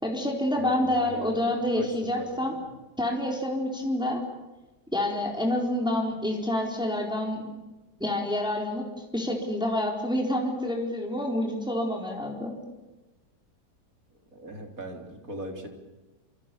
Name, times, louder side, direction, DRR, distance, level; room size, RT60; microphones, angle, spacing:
voice 1, 0.0-2.6 3.0-4.2 4.9-7.5 8.0-12.5, left 1 dB, 5° right, 0 dB, 4.2 m, -28 dB
voice 2, 0.5-2.7 14.3-15.7, right 1 dB, 55° right, 3 dB, 4.4 m, -40 dB
27.5 x 27.5 x 7.1 m, 1.1 s
omnidirectional pair, 1.8 m